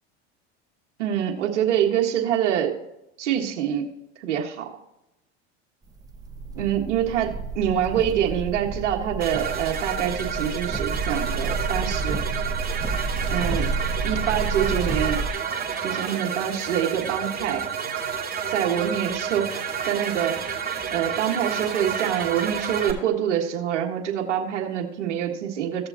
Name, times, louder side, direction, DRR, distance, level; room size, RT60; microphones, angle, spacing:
voice 1, 1.0-2.7 3.2-3.9 4.2-4.7 6.5-12.2 13.3-13.7 14.0-15.2 15.8-17.6 18.5-20.6 20.9-25.9, right 9 dB, 85° right, -1 dB, 1.7 m, -25 dB
sound 1, 6.0-15.3, right 4 dB, 10° right, 0.6 m, -30 dB
sound 2, 9.2-22.9, right 7 dB, 25° right, 2.6 m, -30 dB
16.0 x 7.0 x 2.9 m, 0.86 s
supercardioid pair, 100°, 35 cm